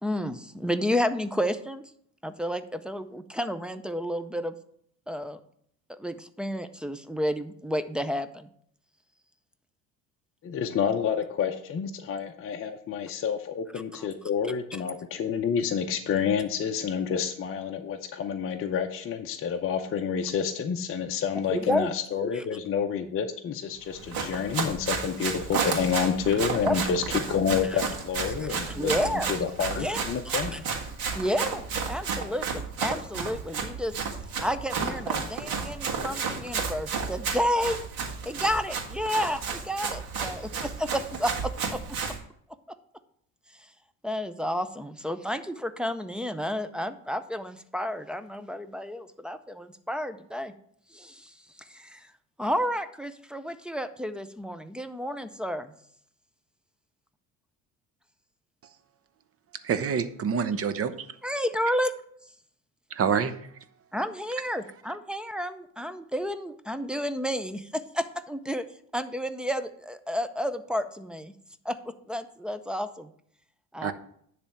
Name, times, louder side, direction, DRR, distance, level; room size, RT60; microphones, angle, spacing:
voice 1, 0.0-1.8 2.2-4.5 5.1-5.4 5.9-8.5 14.0-14.1 21.5-21.9 22.3-22.4 26.6-26.8 27.7-27.8 28.4-29.3 29.8-30.6 31.1-33.9 34.4-37.9 38.3-41.8 44.0-50.5 50.9-51.3 51.7-52.1 52.4-55.7 61.2-61.9 63.9-68.6 68.9-71.3 71.6-73.1 73.7-73.9, equal, ahead, 0.5 m, -31 dB
voice 2, 10.4-27.0 27.3-30.6, left 7 dB, 35° left, 0.7 m, -29 dB
Run, 23.9-42.2, right 5 dB, 60° right, 1.7 m, -32 dB
voice 3, 59.6-61.1 63.0-63.4 73.8-73.9, right 7 dB, 35° right, 0.8 m, -26 dB
10.0 x 3.4 x 6.9 m
cardioid pair, 105°, 40 cm